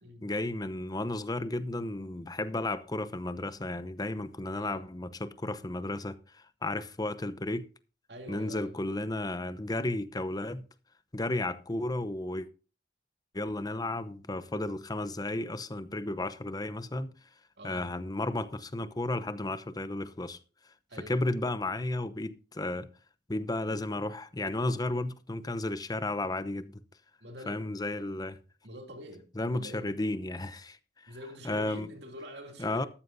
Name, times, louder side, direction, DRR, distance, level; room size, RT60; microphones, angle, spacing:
voice 1, 0.2-7.7 8.3-10.7 11.1-12.5 13.3-17.1 17.6-20.4 21.0-22.9 23.3-26.7 27.5-28.4 29.4-30.8 31.0-31.1 31.4-31.9 32.6-32.9, left 2 dB, 20° left, 0.8 m, -33 dB
voice 2, 4.5-4.8 8.1-8.8 17.6-17.9 20.9-21.3 27.2-27.7 28.6-29.3 29.5-29.9 31.1-32.9, equal, 70° right, 2.8 m, -45 dB
13.0 x 13.0 x 2.7 m
head